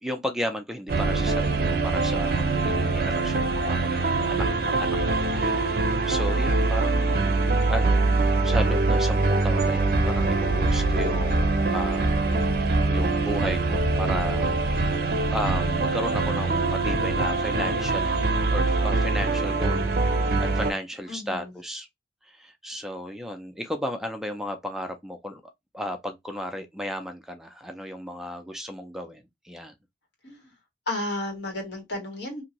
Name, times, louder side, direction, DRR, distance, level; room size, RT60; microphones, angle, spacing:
voice 1, 0.0-7.4 7.7-12.2 12.6-15.0 15.3-21.9 22.2-25.4 25.7-29.7, equal, ahead, 0.4 m, -34 dB
sound 1, 0.9-20.7, right 3 dB, 55° right, 0.6 m, -23 dB
voice 2, 21.1-21.5 30.2-30.5 30.9-32.4, left 1 dB, 90° left, 1.6 m, -33 dB
2.8 x 2.6 x 2.8 m
head